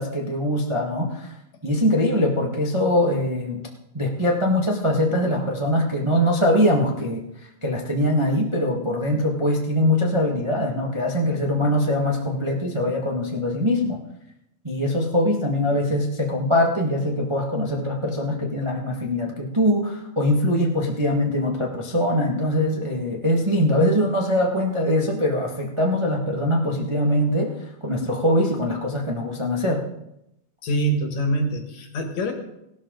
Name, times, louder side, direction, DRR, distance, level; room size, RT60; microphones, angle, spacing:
voice 1, 0.0-1.3 1.6-3.7 3.9-14.0 14.6-29.8, left 1 dB, 20° right, -1 dB, 0.7 m, -22 dB
voice 2, 30.6-32.3, right 1 dB, 60° left, 5 dB, 2.5 m, -24 dB
17.5 x 12.5 x 4.0 m, 0.84 s
omnidirectional pair, 3.9 m